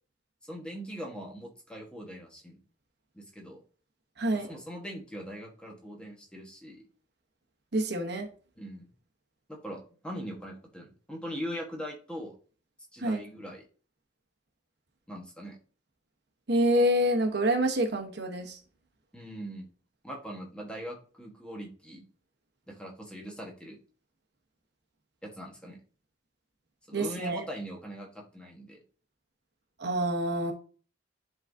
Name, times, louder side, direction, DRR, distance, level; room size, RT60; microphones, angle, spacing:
voice 1, 0.4-2.6 3.1-3.6 4.3-6.8 8.6-8.9 9.5-12.3 12.9-13.6 15.1-15.6 19.1-19.7 20.0-22.1 22.7-23.8 25.2-25.8 26.9-28.8, equal, 5° left, 1.2 m, -41 dB
voice 2, 4.2-4.5 7.7-8.3 13.0-13.2 16.5-18.6 26.9-27.4 29.8-30.5, right 1 dB, 60° right, 1.0 m, -27 dB
9.9 x 3.9 x 2.6 m
head